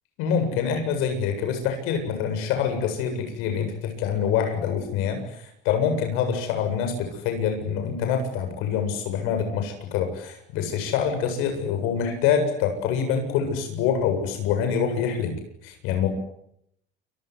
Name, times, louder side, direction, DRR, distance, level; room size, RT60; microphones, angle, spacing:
voice 1, 0.2-16.1, left 7 dB, 90° left, 6 dB, 7.8 m, -26 dB
29.0 x 24.0 x 8.0 m, 0.74 s
cardioid pair, 135°, 21 cm